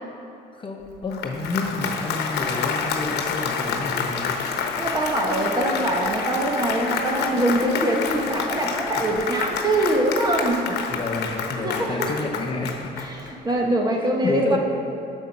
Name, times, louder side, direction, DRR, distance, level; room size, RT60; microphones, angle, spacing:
voice 1, 0.6-4.4 8.9-9.1 10.7-13.0 14.2-14.6, left 3 dB, 30° left, 1 dB, 1.0 m, -29 dB
Applause, 0.9-13.5, left 6 dB, 75° left, 1.0 m, -28 dB
voice 2, 4.8-10.7 11.6-12.1 13.0-14.6, right 1 dB, 25° right, 1 dB, 1.2 m, -23 dB
9.0 x 6.4 x 5.9 m, 2.9 s
cardioid pair, 110°, 17 cm